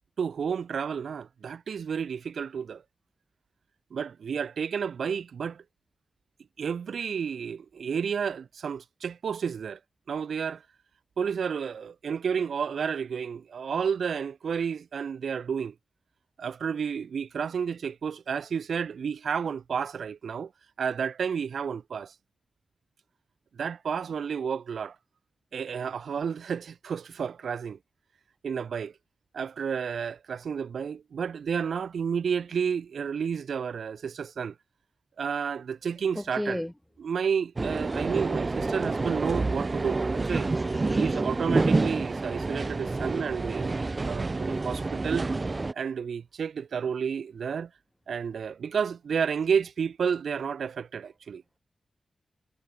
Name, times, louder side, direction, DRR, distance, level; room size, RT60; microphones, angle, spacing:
voice 1, 0.2-2.8 3.9-5.6 6.6-9.8 10.1-10.6 11.2-15.7 16.4-20.5 20.8-22.1 23.5-25.0 25.5-27.8 28.4-28.9 29.3-34.5 35.2-36.6 37.0-40.5 40.9-45.3 45.7-47.7 48.1-51.4, right 7 dB, 90° right, 1.8 m, -31 dB
voice 2, 36.2-36.7 40.3-41.2, equal, 5° left, 3.3 m, -35 dB
sound 1, 37.6-45.7, right 3 dB, 35° right, 2.2 m, -28 dB
wide cardioid pair, 85°, 0 cm